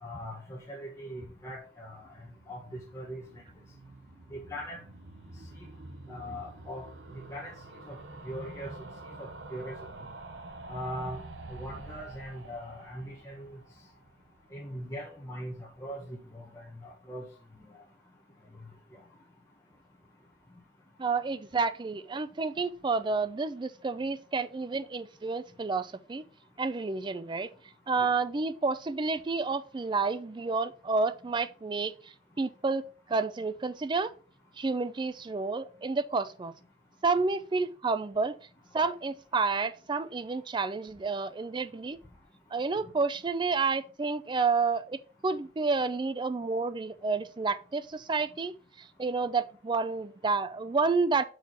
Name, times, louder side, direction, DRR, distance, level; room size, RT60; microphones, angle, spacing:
voice 1, 0.0-2.1 2.5-3.2 4.3-4.8 6.1-6.9 7.1-7.5 7.8-8.0 8.2-8.7 9.2-9.8 10.7-11.2 11.5-13.6 14.5-17.2 28.0-28.1, equal, 15° left, 1.3 m, -40 dB
sound 1, 1.9-14.9 15.2-15.3 15.5-15.6 15.8-15.9, right 2 dB, 90° right, 0.9 m, -47 dB
voice 2, 21.0-26.2 26.6-27.5 27.9-31.9 32.4-32.8 33.1-34.1 34.6-36.5 37.0-38.4 38.7-42.0 42.5-48.5 49.0-51.2, right 4 dB, 25° right, 0.4 m, -30 dB
6.1 x 4.7 x 4.1 m
head